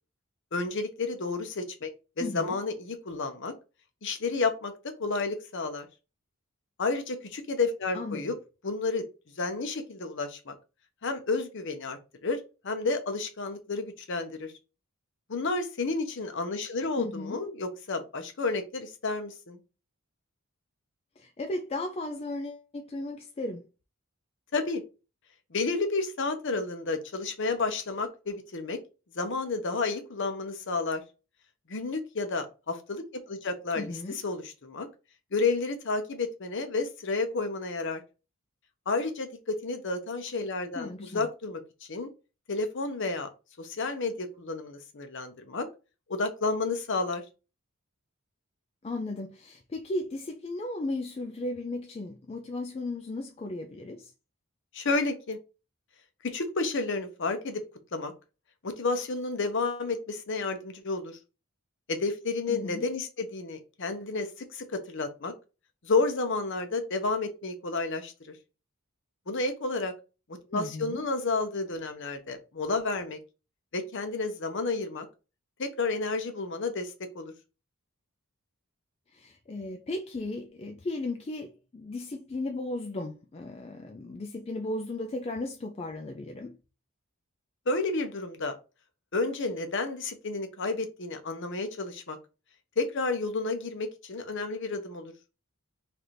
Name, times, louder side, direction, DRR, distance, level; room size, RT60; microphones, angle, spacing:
voice 1, 0.5-1.9 2.2-3.5 4.0-4.7 5.0-5.9 6.8-8.4 8.6-9.0 9.4-10.5 11.0-14.5 15.3-19.6 24.5-24.8 25.5-28.8 29.1-31.0 31.7-33.9 34.2-34.9 35.3-38.0 38.9-41.6 41.9-42.1 42.5-43.3 43.6-45.7 46.1-47.2 54.7-55.4 56.3-57.6 57.9-58.1 58.6-61.2 61.9-65.3 65.8-68.3 69.3-69.9 70.5-73.2 73.7-75.1 75.6-77.3 87.7-88.5 89.1-92.2 92.8-95.1, left 3 dB, 55° left, 0.7 m, -31 dB
voice 2, 2.2-2.6 7.9-8.3 17.0-17.4 21.2-23.6 33.8-34.2 40.8-41.3 48.8-54.1 62.5-62.9 70.5-71.0 79.1-86.6, left 2 dB, 25° left, 0.3 m, -35 dB
3.3 x 2.5 x 4.2 m
head